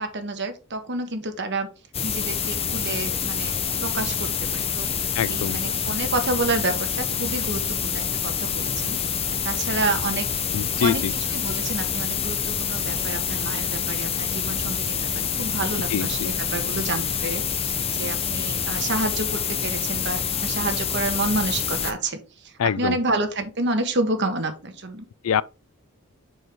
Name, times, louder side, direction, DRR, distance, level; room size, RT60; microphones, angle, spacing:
voice 1, 0.0-1.7 2.0-4.9 5.3-9.0 9.4-10.3 10.8-17.7 18.0-25.1, right 2 dB, 50° right, 1.4 m, -29 dB
sound 1, 1.9-21.9, left 7 dB, 25° left, 0.8 m, -27 dB
voice 2, 5.2-5.6 10.5-11.1 15.9-16.3 22.6-23.0 25.2-25.4, left 8 dB, 70° left, 0.4 m, -24 dB
6.8 x 6.2 x 3.7 m
head